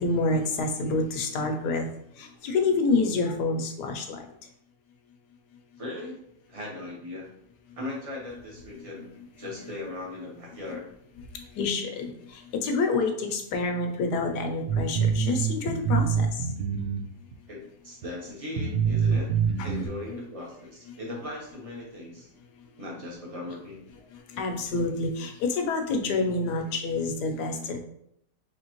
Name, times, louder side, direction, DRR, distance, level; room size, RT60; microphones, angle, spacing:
voice 1, 0.0-1.9 2.2-4.2 11.6-16.4 19.6-19.7 24.3-27.8, left 3 dB, 75° left, 4 dB, 1.2 m, -27 dB
voice 2, 5.8-6.2 6.5-7.3 7.8-9.1 9.4-10.9 17.5-19.3 19.6-22.3 22.8-23.8, left 2 dB, 25° right, -3 dB, 0.8 m, -38 dB
sound 1, 14.7-17.3 18.0-18.1 18.6-19.9, right 7 dB, 75° right, 0.6 m, -25 dB
4.2 x 3.2 x 2.9 m, 0.73 s
omnidirectional pair, 1.8 m